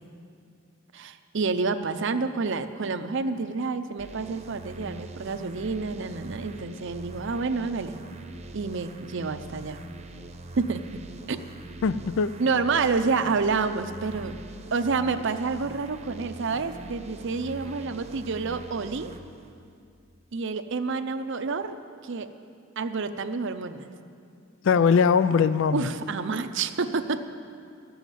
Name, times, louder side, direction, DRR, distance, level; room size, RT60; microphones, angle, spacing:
voice 1, 0.9-8.0 8.5-9.8 10.6-10.8 11.3-11.4 12.4-14.3 14.7-19.1 20.3-21.8 22.0-22.3 22.8-23.9 25.7-27.2, right 4 dB, 65° right, 9 dB, 0.6 m, -28 dB
sound 1, 4.0-19.5, right 2 dB, 35° right, 0.8 m, -43 dB
voice 2, 11.8-12.4 24.6-25.9, left 6 dB, 70° left, 14 dB, 0.4 m, -21 dB
13.5 x 7.1 x 9.1 m, 2.4 s
head